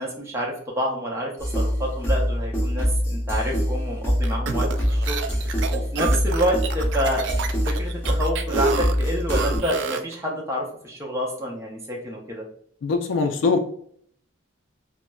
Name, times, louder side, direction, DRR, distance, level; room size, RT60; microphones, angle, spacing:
voice 1, 0.0-5.2 5.7-12.4, equal, 15° right, -2 dB, 0.6 m, -28 dB
sound 1, 1.4-9.6, equal, 10° left, 0.9 m, -24 dB
sound 2, 4.2-10.1, right 4 dB, 65° right, 0.3 m, -29 dB
voice 2, 12.8-13.6, left 4 dB, 75° left, 4 dB, 0.3 m, -22 dB
4.1 x 2.0 x 2.3 m, 0.62 s
head